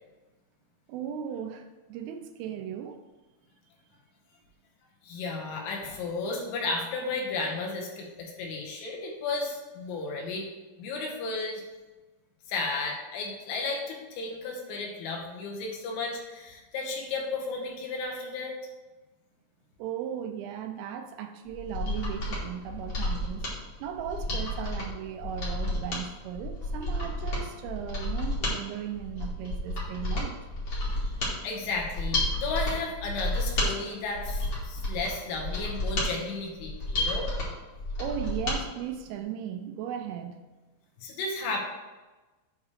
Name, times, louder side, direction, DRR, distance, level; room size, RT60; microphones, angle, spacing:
voice 1, 0.9-3.0 19.8-23.5 23.8-30.4 38.0-40.5, right 9 dB, 85° right, 5 dB, 3.0 m, -37 dB
voice 2, 5.0-10.5 10.8-11.6 12.5-18.5 31.4-37.3 41.0-41.6, left 3 dB, 75° left, -1 dB, 3.4 m, -33 dB
Mechanisms, 21.5-38.6 38.9-39.0, left 1 dB, 50° left, 1.8 m, -31 dB
8.5 x 3.5 x 6.6 m, 1.2 s
omnidirectional pair, 5.9 m